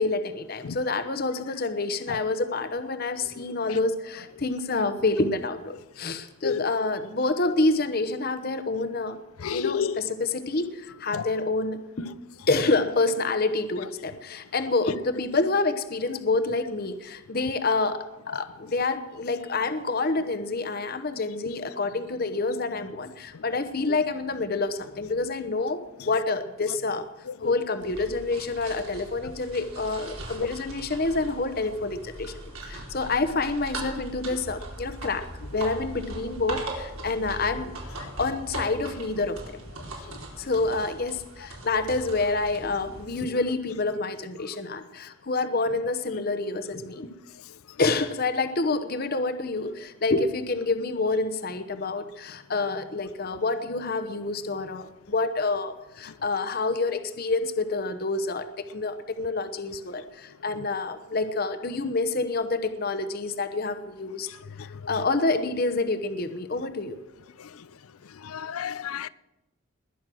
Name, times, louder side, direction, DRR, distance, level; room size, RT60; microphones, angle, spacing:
voice 1, 0.0-9.2 9.5-12.1 12.5-25.8 26.0-27.0 27.4-35.3 35.5-37.8 38.2-39.6 40.4-47.1 47.8-64.3 64.6-67.0, left 3 dB, 45° left, 0.9 m, -28 dB
voice 2, 9.4-10.0 11.1-11.3 23.3-23.4 23.9-24.0 27.3-27.5 30.4-30.5 35.5-35.6 38.0-38.1 40.1-40.2 64.6-64.9 67.4-67.7 68.1-69.1, left 7 dB, 80° left, 0.5 m, -32 dB
sound 1, 27.8-43.1, right 2 dB, 80° right, 4.1 m, -40 dB
20.5 x 9.3 x 6.2 m
head